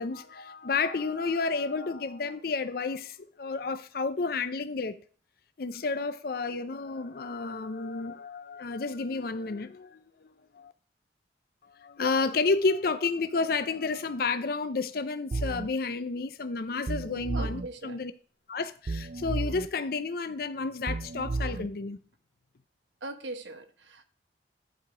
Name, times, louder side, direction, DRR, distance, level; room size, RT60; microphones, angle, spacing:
voice 1, 0.0-5.0 5.6-10.3 10.6-10.7 11.8-18.1 18.5-22.0, left 4 dB, 55° left, 0.5 m, -31 dB
sound 1, 15.3-15.7 16.9-17.7 18.9-19.7 20.9-21.7, right 3 dB, 45° right, 0.4 m, -32 dB
voice 2, 17.3-18.0 23.0-24.0, right 2 dB, 85° right, 1.1 m, -40 dB
11.5 x 4.7 x 5.0 m
head